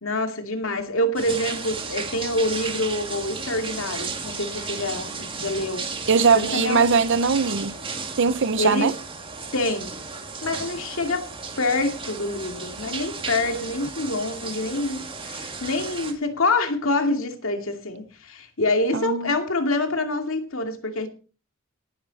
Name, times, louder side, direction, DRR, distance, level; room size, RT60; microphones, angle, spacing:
voice 1, 0.0-5.9 6.3-6.8 8.6-8.9 9.5-10.0 10.4-11.3 11.6-21.1, left 2 dB, 70° left, 2.5 m, -26 dB
sound 1, 1.2-16.1, right 4 dB, 25° right, 2.3 m, -34 dB
voice 2, 6.1-7.7 8.2-8.9 18.9-19.3, right 5 dB, 60° right, 0.7 m, -20 dB
18.5 x 10.5 x 4.1 m
head